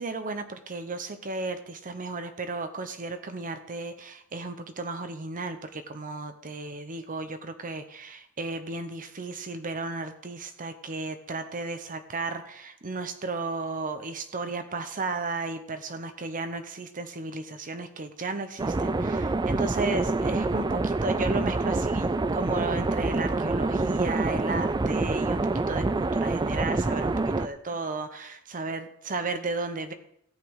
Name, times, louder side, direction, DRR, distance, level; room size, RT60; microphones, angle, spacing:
voice 1, 0.0-29.9, right 3 dB, 40° right, 9 dB, 0.8 m, -34 dB
sound 1, 18.6-27.5, right 3 dB, 20° right, 0.4 m, -26 dB
14.0 x 8.4 x 4.7 m, 0.73 s
head